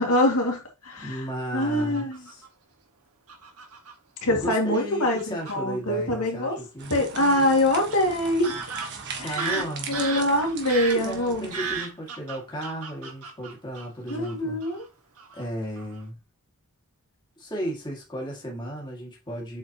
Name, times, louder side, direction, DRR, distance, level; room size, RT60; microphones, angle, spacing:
voice 1, 0.0-1.2 1.5-2.2 4.2-6.6 6.9-8.6 9.2-11.5 14.1-14.9, left 1 dB, 80° left, 2.0 m, -24 dB
voice 2, 1.0-2.4 4.3-7.7 9.1-10.0 10.9-14.6 15.3-16.2 17.4-19.6, equal, 20° left, 1.9 m, -34 dB
Fowl / Bird vocalization bird call bird song, 1.8-2.5 3.3-3.9 4.7-4.8 5.2-5.6 7.2-7.3 7.9-8.0 8.4-14.3 14.6-14.9 15.2-15.4 15.8-16.0, right 5 dB, 80° right, 1.6 m, -35 dB
sound 1, 6.8-11.8, right 5 dB, 50° right, 1.3 m, -40 dB
7.4 x 4.5 x 2.9 m
head